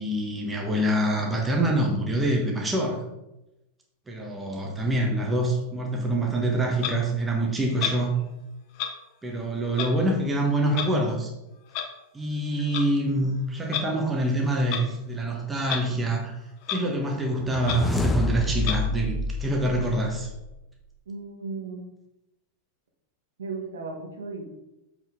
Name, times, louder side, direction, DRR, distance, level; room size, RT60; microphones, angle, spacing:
voice 1, 0.0-3.0 4.1-8.1 9.2-11.3 12.1-16.3 16.7-20.3, right 1 dB, 10° right, 0 dB, 1.3 m, -26 dB
Clock, 6.8-6.9 7.8-8.0 8.7-8.9 9.7-9.9 10.7-10.9 11.7-11.9 12.6-12.8 13.6-13.9 14.7-14.9 15.6-15.8 16.2-16.3 16.6-16.8 17.2-17.3 17.6-17.8 18.6-18.8, left 8 dB, 45° left, 0.9 m, -30 dB
sound 1, 17.3-20.6, left 2 dB, 10° left, 0.5 m, -28 dB
voice 2, 21.1-21.9 23.4-24.4, right 4 dB, 65° right, 2 dB, 1.4 m, -35 dB
7.5 x 4.9 x 3.7 m, 0.94 s
figure-of-eight pair, 90°, 0 cm